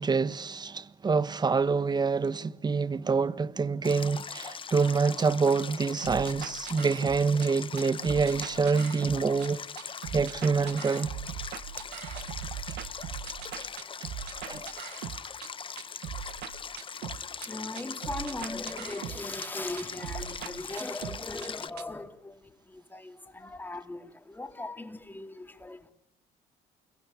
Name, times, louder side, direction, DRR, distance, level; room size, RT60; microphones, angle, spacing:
voice 1, 0.0-9.6 10.1-11.1 14.5-14.7, right 4 dB, 25° right, 1.3 m, -26 dB
Stream, 3.8-21.7, left 6 dB, 30° left, 1.0 m, -41 dB
sound 1, 6.0-7.5 7.8-9.5 9.8-15.5 15.8-17.5 17.8-19.5 19.8-21.5 21.8-21.9, right 10 dB, 85° right, 1.8 m, -40 dB
voice 2, 17.5-25.9, left 2 dB, 10° left, 2.8 m, -39 dB
29.0 x 23.0 x 8.5 m
cardioid pair, 110°, 17 cm